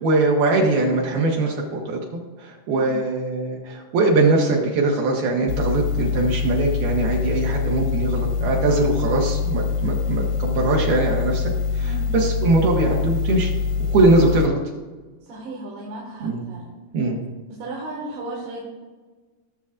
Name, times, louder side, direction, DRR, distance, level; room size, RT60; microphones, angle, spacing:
voice 1, 0.0-2.0 2.4-13.5 13.9-14.6 16.2-16.4 16.9-17.2, right 2 dB, 70° right, -2 dB, 2.9 m, -21 dB
voice 2, 2.7-3.0 11.8-12.1 15.2-16.7 17.5-18.6, right 2 dB, 90° right, -5 dB, 4.0 m, -35 dB
sound 1, 5.5-14.5, left 5 dB, 85° left, 2.1 m, -24 dB
18.5 x 7.0 x 2.5 m, 1.3 s
omnidirectional pair, 4.8 m